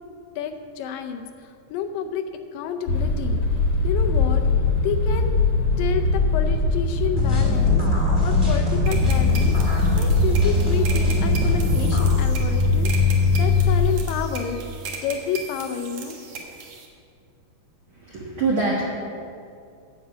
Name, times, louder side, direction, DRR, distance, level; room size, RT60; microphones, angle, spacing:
voice 1, 0.4-3.4 3.8-4.4 4.8-5.4 5.8-14.6 15.0-16.2, left 7 dB, 80° left, 6 dB, 2.1 m, -30 dB
sound 1, 2.9-14.0, left 3 dB, 55° left, 1.9 m, -21 dB
sound 2, 7.1-12.1, equal, 20° right, 1.4 m, -25 dB
sound 3, 8.9-16.9, right 5 dB, 60° right, 2.4 m, -38 dB
voice 2, 18.0-18.8, right 3 dB, 80° right, -5 dB, 1.1 m, -24 dB
13.0 x 5.3 x 8.0 m, 2.4 s
omnidirectional pair, 4.4 m